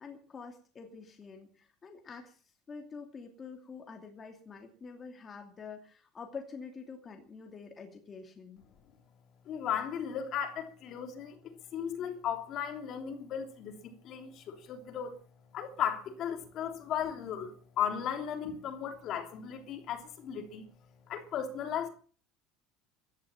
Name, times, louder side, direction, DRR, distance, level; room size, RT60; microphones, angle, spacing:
voice 1, 0.0-8.7, left 5 dB, 20° left, 2.7 m, -47 dB
voice 2, 9.4-15.1 15.5-20.7 21.1-21.9, left 8 dB, 40° left, 3.2 m, -36 dB
16.0 x 12.5 x 7.3 m
cardioid pair, 165°, 0 cm